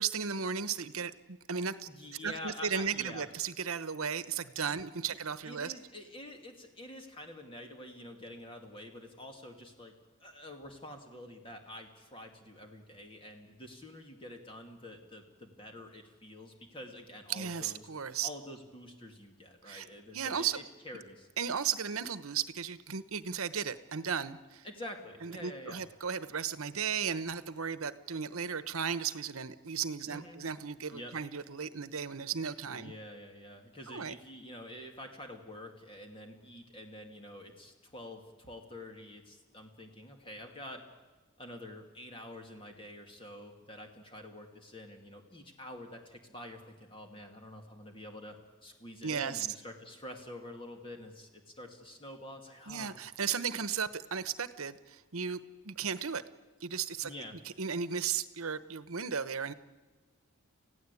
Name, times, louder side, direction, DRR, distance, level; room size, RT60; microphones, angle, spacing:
voice 1, 0.0-1.9 2.2-5.7 17.3-18.3 19.7-19.9 20.1-20.6 21.4-24.6 25.2-32.9 33.9-34.1 49.0-49.5 52.7-55.4 55.6-56.2 56.6-57.1 57.4-59.5, right 6 dB, 80° right, 14 dB, 1.0 m, -35 dB
voice 2, 1.9-3.3 5.4-9.9 10.2-17.8 18.2-21.3 24.6-25.8 30.1-30.4 30.9-31.1 32.7-40.8 41.4-48.4 48.6-52.9 57.0-57.4, left 1 dB, 25° left, 3 dB, 2.6 m, -47 dB
28.5 x 16.0 x 8.5 m, 1.3 s
head